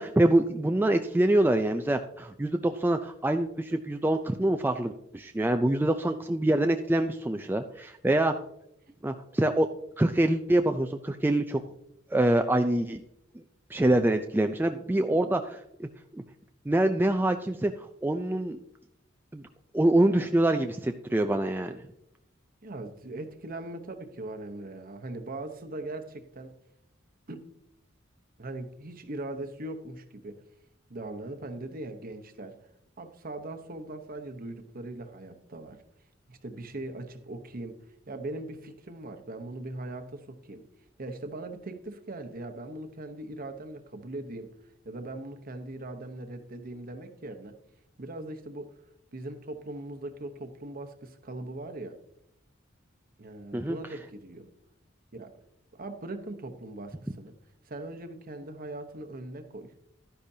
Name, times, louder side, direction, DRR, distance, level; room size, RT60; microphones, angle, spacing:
voice 1, 0.0-8.3 9.0-9.7 10.0-11.6 12.1-13.0 13.7-15.9 16.1-16.2 16.7-18.6 19.3-19.4 19.7-21.8 53.5-53.8, right 1 dB, 10° right, 6 dB, 0.4 m, -25 dB
voice 2, 22.6-26.5 27.3-27.4 28.4-30.4 30.9-32.6 33.0-35.8 36.3-40.7 41.0-44.5 44.8-47.6 48.0-48.7 49.1-52.0 53.2-54.5 55.1-55.4 55.7-57.4 57.6-59.7, right 2 dB, 45° right, 7 dB, 1.0 m, -40 dB
12.0 x 10.0 x 2.8 m, 0.77 s
head